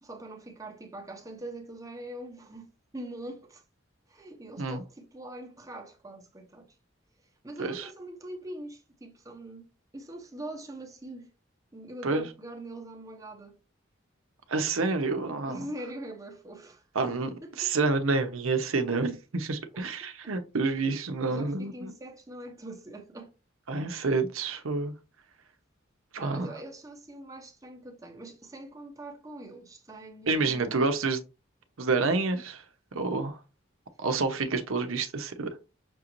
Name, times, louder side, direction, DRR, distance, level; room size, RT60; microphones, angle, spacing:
voice 1, 0.0-3.6 4.1-6.7 7.4-11.3 11.7-13.6 15.5-16.8 17.4-17.9 20.2-20.3 21.2-23.3 26.2-30.9, right 1 dB, 15° right, 0.8 m, -43 dB
voice 2, 14.5-15.7 16.9-21.9 23.7-24.9 26.1-26.5 30.3-31.2 31.8-32.6 32.9-33.4 34.0-35.5, right 3 dB, 90° right, 0.8 m, -28 dB
6.1 x 2.5 x 3.0 m
head